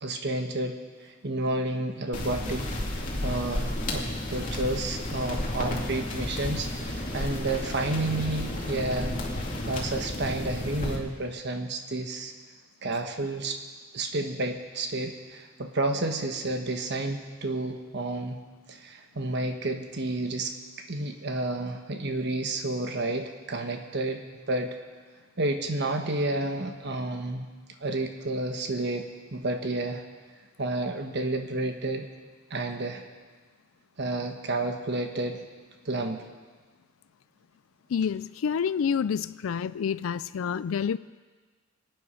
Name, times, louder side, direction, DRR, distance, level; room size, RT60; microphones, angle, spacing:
voice 1, 0.0-2.6 3.2-9.2 9.7-12.3 12.8-13.6 13.9-18.4 18.7-20.6 20.9-24.2 24.5-24.8 25.4-27.5 27.8-30.0 30.6-32.1 32.5-33.1 34.0-35.5 35.8-36.2, right 2 dB, 55° right, 5 dB, 1.2 m, -30 dB
sound 1, 2.1-11.0, left 1 dB, 40° left, 2.5 m, -32 dB
voice 2, 37.9-41.0, left 7 dB, 85° left, 16 dB, 0.4 m, -28 dB
24.5 x 9.4 x 5.7 m, 1.4 s
head